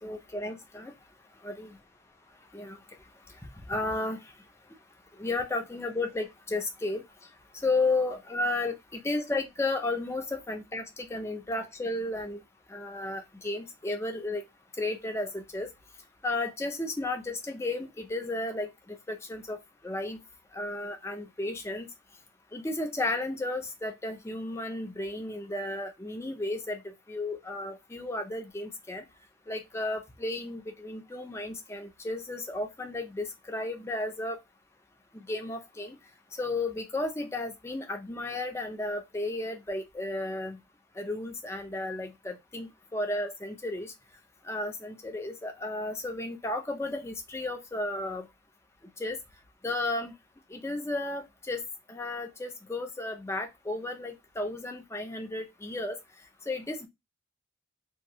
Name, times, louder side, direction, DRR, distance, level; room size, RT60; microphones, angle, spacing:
voice 1, 0.0-0.9 1.4-1.7 2.5-2.8 3.7-4.2 5.2-7.0 7.6-12.4 12.7-14.4 14.8-15.7 16.2-19.6 19.8-20.2 20.5-21.9 22.5-29.0 29.5-34.4 35.1-36.0 36.4-40.6 41.0-43.9 44.4-48.3 49.0-49.2 49.6-50.1 50.5-51.6 51.9-56.0 56.5-56.9, left 2 dB, 15° left, 0.4 m, -33 dB
2.6 x 2.2 x 3.0 m
head